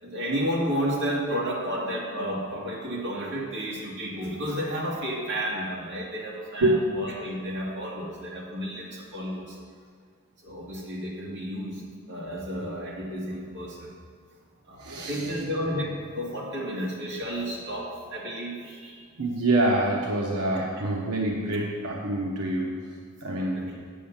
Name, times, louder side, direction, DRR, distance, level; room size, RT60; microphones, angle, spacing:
voice 1, 0.0-9.6 10.4-11.8 12.1-13.9 14.6-19.0 20.5-20.7 21.5-21.6 23.5-23.8, equal, 50° right, -4 dB, 2.2 m, -32 dB
voice 2, 14.8-15.2 19.2-22.7 23.2-23.6, right 2 dB, 90° right, -1 dB, 1.0 m, -26 dB
8.4 x 5.6 x 7.3 m, 2.1 s
head